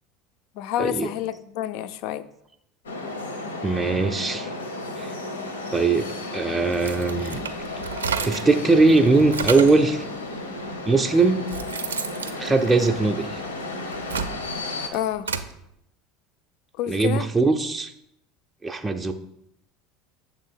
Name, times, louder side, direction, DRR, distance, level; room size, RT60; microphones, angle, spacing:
voice 1, 0.6-2.3 14.9-15.3 16.8-17.3, left 12 dB, 60° left, 15 dB, 0.3 m, -28 dB
sound 1, 2.9-14.9, left 2 dB, 85° left, 0.8 m, -33 dB
voice 2, 3.6-4.5 5.0-5.1 5.7-7.4 8.2-10.0 10.8-11.5 12.4-13.4 16.9-17.9 18.6-19.1, right 3 dB, 10° right, 4 dB, 0.4 m, -20 dB
sound 2, 6.7-8.6 9.0-9.9 10.7-10.8 11.2-13.4 13.8-15.5, right 6 dB, 85° right, 0.4 m, -31 dB
7.2 x 3.0 x 4.4 m, 0.79 s
hypercardioid pair, 75°, 0 cm